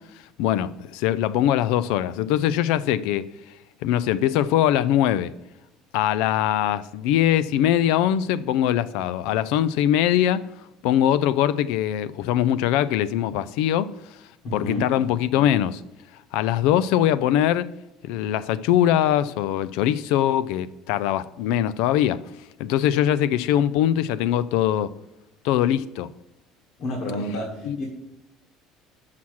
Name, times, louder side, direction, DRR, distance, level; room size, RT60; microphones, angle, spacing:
voice 1, 0.4-3.3 3.8-5.3 5.9-10.5 10.8-13.9 14.5-15.8 16.3-17.7 18.0-22.2 22.6-24.9 25.4-26.1 27.7-27.8, left 11 dB, 75° left, 0.3 m, -22 dB
voice 2, 14.4-14.9 26.8-27.8, left 1 dB, 55° left, 1.4 m, -29 dB
5.9 x 5.7 x 6.3 m
cardioid pair, 165°, 0 cm